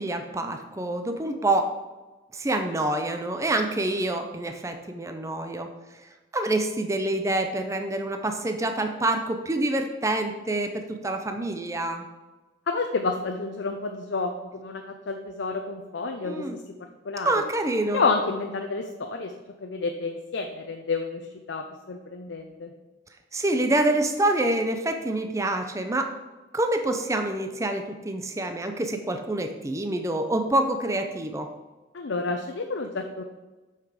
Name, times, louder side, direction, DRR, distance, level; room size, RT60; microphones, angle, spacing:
voice 1, 0.0-1.7 2.3-5.7 6.3-12.0 16.2-16.6 17.2-18.0 23.3-26.1 26.5-31.5, right 1 dB, 15° right, 6 dB, 0.5 m, -26 dB
voice 2, 12.7-14.3 14.6-16.4 17.1-17.4 17.9-19.3 19.6-21.2 21.5-22.7 31.9-33.2, left 4 dB, 90° left, 3 dB, 0.6 m, -29 dB
7.9 x 5.8 x 5.0 m, 1.2 s
head